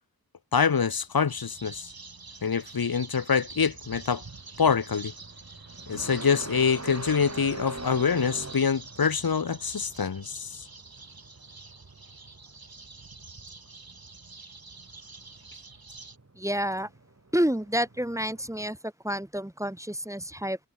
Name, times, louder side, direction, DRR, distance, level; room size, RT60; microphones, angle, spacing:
voice 1, 0.5-1.9 2.4-4.2 4.6-5.1 5.9-10.6, left 6 dB, 80° left, 1.0 m, -25 dB
sound 1, 1.0-18.7, right 2 dB, 45° right, 4.4 m, -45 dB
sound 2, 1.3-16.2, right 3 dB, 80° right, 4.9 m, -47 dB
voice 2, 16.3-16.9 17.3-20.6, equal, 10° right, 1.4 m, -29 dB
wide cardioid pair, 60°, 36 cm